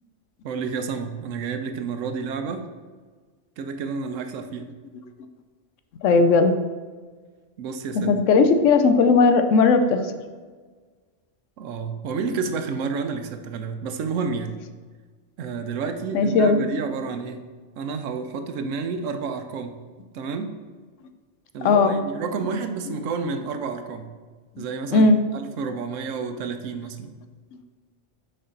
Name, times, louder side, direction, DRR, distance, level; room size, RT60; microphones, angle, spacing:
voice 1, 0.4-2.7 3.6-4.7 7.6-8.1 11.6-14.5 15.4-17.4 17.8-19.8 20.1-20.6 21.5-24.1 24.6-25.1 25.3-27.1, right 5 dB, 85° right, 7 dB, 1.0 m, -30 dB
voice 2, 6.0-6.6 7.9-10.1 16.1-16.7 21.6-22.0 24.6-24.7 24.9-25.2, left 4 dB, 80° left, 8 dB, 1.0 m, -17 dB
6.7 x 4.5 x 3.8 m, 1.5 s
omnidirectional pair, 1.3 m